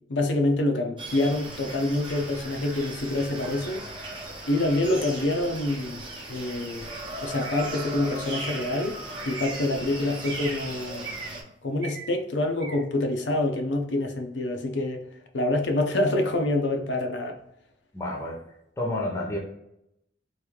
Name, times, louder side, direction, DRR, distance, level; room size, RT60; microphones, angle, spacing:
voice 1, 0.1-3.8 4.5-6.0 6.3-6.9 7.2-9.0 9.3-11.1 11.6-15.0 15.3-17.4, left 2 dB, 75° left, 0.6 m, -26 dB
sound 1, 1.0-11.4, right 1 dB, 25° right, 0.7 m, -37 dB
sound 2, 8.5-8.7 9.3-9.7 10.2-10.6 11.0-11.3 11.8-12.1 12.6-12.8, right 4 dB, 75° right, 0.7 m, -39 dB
voice 2, 17.9-18.4 18.8-19.4, left 1 dB, 15° left, 0.7 m, -29 dB
3.1 x 2.6 x 3.6 m
head